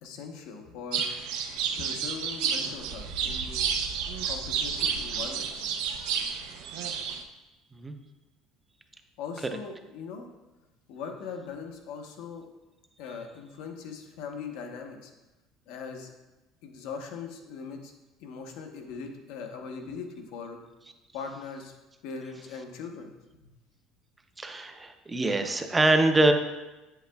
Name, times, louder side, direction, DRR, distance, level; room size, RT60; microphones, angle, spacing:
voice 1, 0.0-1.1 1.8-3.7 4.2-5.8 9.2-10.3 10.9-12.5 13.0-15.1 15.7-16.1 16.6-17.9 18.2-20.6 21.1-21.7 22.0-23.5, left 5 dB, 75° left, 3 dB, 0.9 m, -40 dB
sound 1, 0.9-7.2, right 7 dB, 85° right, 0.6 m, -31 dB
voice 2, 24.4-26.3, right 2 dB, 15° right, 6 dB, 0.5 m, -24 dB
8.0 x 7.5 x 2.3 m, 1.1 s
cardioid pair, 140°, 0 cm